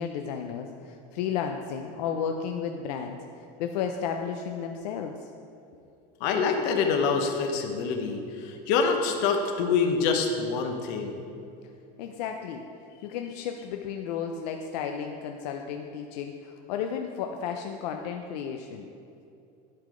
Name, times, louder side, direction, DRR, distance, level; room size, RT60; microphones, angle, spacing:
voice 1, 0.0-3.2 3.6-5.2 12.0-12.6 13.0-18.9, left 7 dB, 75° left, 4 dB, 0.5 m, -33 dB
voice 2, 6.2-11.1, left 5 dB, 55° left, 4 dB, 0.9 m, -26 dB
10.5 x 3.9 x 5.0 m, 2.6 s
supercardioid pair, 155°, 21 cm